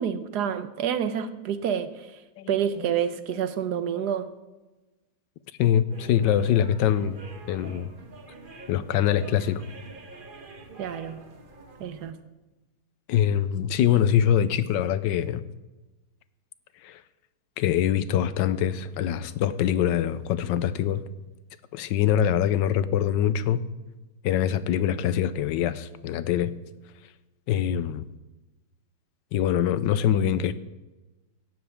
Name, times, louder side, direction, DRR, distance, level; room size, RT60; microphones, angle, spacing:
voice 1, 0.0-2.2 2.5-4.3 10.8-11.2 11.8-12.2, right 8 dB, 70° right, 11 dB, 1.4 m, -28 dB
voice 2, 2.4-2.9 3.7-3.8 5.6-7.2 7.5-7.9 8.7-9.7 13.1-15.4 16.8-17.0 17.6-21.0 21.7-23.6 24.2-26.5 27.5-28.1 29.3-30.5, left 10 dB, 85° left, 14 dB, 1.3 m, -24 dB
sound 1, 5.9-12.1, right 3 dB, 35° right, 1.2 m, -46 dB
17.0 x 12.0 x 3.6 m, 1.1 s
omnidirectional pair, 1.9 m